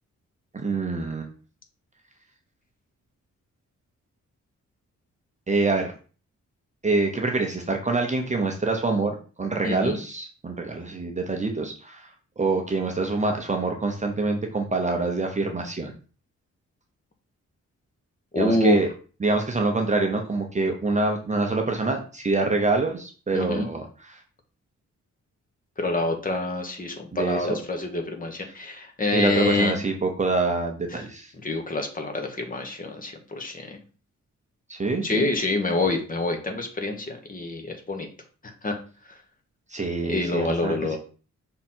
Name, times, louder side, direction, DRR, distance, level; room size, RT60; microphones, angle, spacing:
voice 1, 0.5-1.3 5.5-5.9 6.8-12.0 12.4-15.9 18.4-18.9 19.2-23.8 24.1-24.2 27.1-27.5 29.1-31.3 34.7-35.3 39.7-40.8, right 3 dB, 25° right, 3 dB, 0.8 m, -25 dB
voice 2, 9.6-10.0 18.3-18.8 23.3-23.7 25.8-29.8 30.9-31.0 31.4-33.8 35.0-38.1 38.4-38.8 39.1-39.2 40.0-41.0, left 2 dB, 30° left, 4 dB, 1.2 m, -27 dB
5.8 x 3.8 x 4.4 m, 0.37 s
wide cardioid pair, 165°, 30 cm